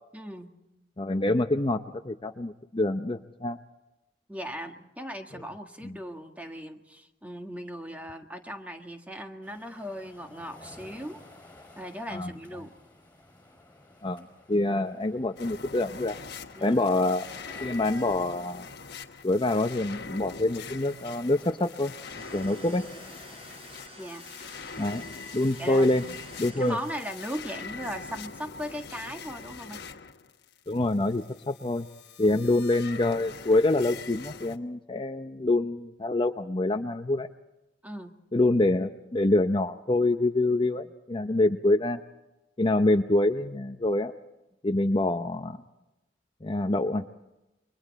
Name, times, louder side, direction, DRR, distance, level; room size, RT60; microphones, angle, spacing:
voice 1, 0.1-0.5 4.3-11.2 11.8-12.8 16.5-16.8 24.0-24.2 25.6-29.9 32.2-32.4 37.8-38.2, equal, 10° right, 5 dB, 1.7 m, -38 dB
voice 2, 1.0-3.6 5.8-6.0 12.1-12.3 14.0-14.2 14.5-16.2 16.6-17.3 17.6-18.7 19.2-21.9 22.3-22.8 24.8-25.0 25.3-26.0 26.4-26.8 30.7-31.9 32.2-37.3 38.3-42.0 42.6-44.1 44.6-45.6 46.4-47.1, left 2 dB, 25° left, 7 dB, 0.7 m, -26 dB
sound 1, 9.4-28.3, left 1 dB, 10° left, 5.5 m, -55 dB
sound 2, 15.4-34.6, left 5 dB, 60° left, 1.3 m, -43 dB
sound 3, 21.9-27.6, equal, 30° right, 7.0 m, -50 dB
29.5 x 23.5 x 4.1 m, 0.94 s
head